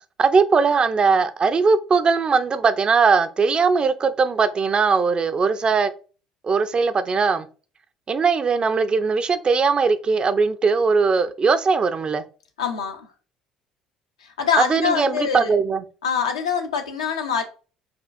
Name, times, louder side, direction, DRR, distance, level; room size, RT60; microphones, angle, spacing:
voice 1, 0.2-5.9 6.4-7.5 8.1-12.2 14.6-15.8, right 5 dB, 35° right, 11 dB, 0.4 m, -20 dB
voice 2, 12.6-13.1 14.2-15.5 16.0-17.4, left 6 dB, 80° left, 3 dB, 0.6 m, -24 dB
4.3 x 2.3 x 2.4 m, 0.35 s
figure-of-eight pair, 55°, 3 cm